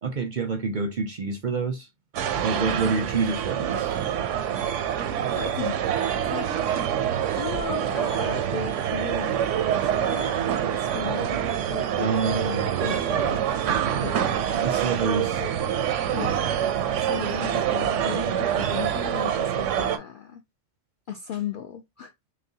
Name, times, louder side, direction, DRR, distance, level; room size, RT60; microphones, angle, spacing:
voice 1, 0.0-1.9 2.4-4.0 12.0-13.4 14.5-15.4, right 4 dB, 50° right, 0.6 m, -28 dB
sound 1, 2.1-20.0, right 9 dB, 80° right, 0.9 m, -26 dB
voice 2, 5.4-5.8 6.2-6.5 7.1-10.4 10.7-11.4 11.7-13.4 14.0-14.4 15.4-16.5 17.0-20.4 21.1-22.1, left 7 dB, 60° left, 0.5 m, -36 dB
6.0 x 2.2 x 2.7 m
omnidirectional pair, 1.3 m